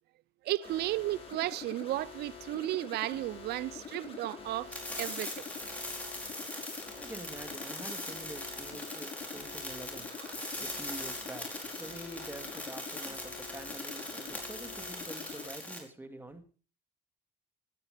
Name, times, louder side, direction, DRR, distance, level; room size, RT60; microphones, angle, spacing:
voice 1, 0.4-5.4 6.0-6.2 10.3-10.4, right 16 dB, 75° right, 0.6 m, -34 dB
sound 1, 0.6-15.5, left 5 dB, 35° left, 6.5 m, -46 dB
sound 2, 4.7-15.8, left 1 dB, 10° left, 4.9 m, -41 dB
voice 2, 7.0-10.1 10.6-11.5 11.8-16.4, right 1 dB, 10° right, 2.3 m, -46 dB
17.5 x 9.9 x 5.1 m
cardioid pair, 110°, 17 cm